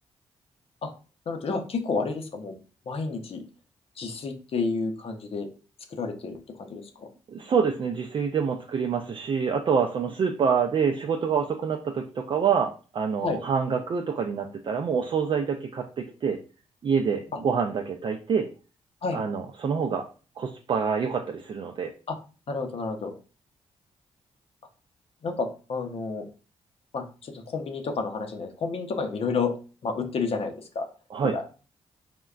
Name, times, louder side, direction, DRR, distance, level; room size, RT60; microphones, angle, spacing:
voice 1, 1.3-2.6 2.9-3.4 4.0-5.5 5.9-7.1 13.2-13.4 17.3-17.4 19.0-19.2 22.1-22.2 22.5-23.1 25.2-26.3 26.9-29.5 29.8-30.9 31.3-31.4, left 4 dB, 55° left, 5 dB, 0.6 m, -30 dB
voice 2, 7.3-16.4 16.8-18.5 19.1-20.0 20.4-21.9 31.1-31.4, right 6 dB, 45° right, 3 dB, 0.4 m, -26 dB
3.5 x 2.2 x 2.3 m, 0.36 s
cardioid pair, 60°, 12 cm